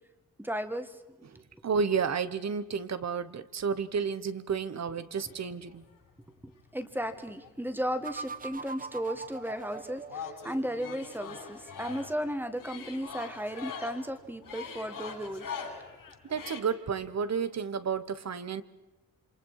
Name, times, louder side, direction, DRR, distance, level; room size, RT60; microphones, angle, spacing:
voice 1, 0.4-1.0 6.4-15.5, equal, 5° right, 9 dB, 1.6 m, -35 dB
voice 2, 1.6-5.8 16.3-18.6, right 6 dB, 55° right, 14 dB, 1.2 m, -31 dB
sound 1, 5.1-6.0 6.8-8.0 8.2-16.6, left 6 dB, 80° left, 7.1 m, -44 dB
sound 2, 8.0-10.9, right 4 dB, 25° right, 0.7 m, -42 dB
27.5 x 27.5 x 4.8 m, 1.0 s
wide cardioid pair, 155°, 32 cm